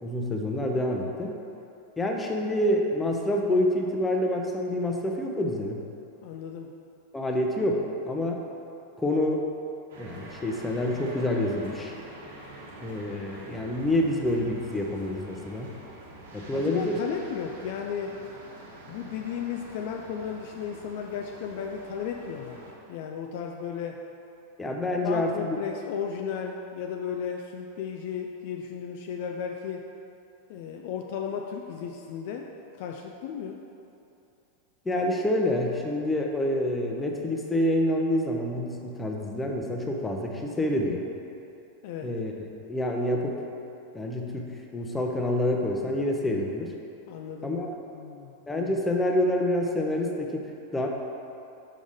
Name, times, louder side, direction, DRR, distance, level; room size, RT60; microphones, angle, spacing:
voice 1, 0.0-1.3 2.0-5.8 7.1-8.4 9.0-9.4 10.0-11.9 12.8-15.7 16.3-17.0 24.6-25.6 34.8-41.0 42.0-42.3 42.7-43.3 43.9-46.7 47.4-47.7 48.5-50.9, left 1 dB, 10° left, 1 dB, 0.7 m, -27 dB
voice 2, 6.2-6.7 16.5-18.2 18.9-24.0 25.0-29.9 30.5-33.6 41.8-42.1 47.1-47.6 47.9-48.3, left 7 dB, 50° left, 2 dB, 0.4 m, -35 dB
sound 1, 9.9-22.7, right 2 dB, 60° right, 1.2 m, -46 dB
6.1 x 5.5 x 3.6 m, 2.8 s
figure-of-eight pair, 90°, 0 cm